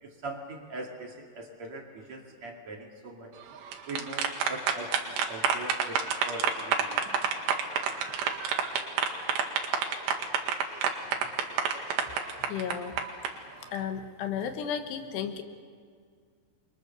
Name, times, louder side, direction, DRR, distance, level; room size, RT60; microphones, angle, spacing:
voice 1, 0.0-3.3 3.9-6.0 6.2-7.0, right 2 dB, 45° right, 0 dB, 3.2 m, -41 dB
sound 1, 3.5-13.3, right 7 dB, 75° right, 3.9 m, -28 dB
voice 2, 12.4-13.0 13.7-15.4, left 8 dB, 75° left, 7 dB, 3.4 m, -33 dB
29.5 x 23.5 x 6.9 m, 2.1 s
omnidirectional pair, 5.1 m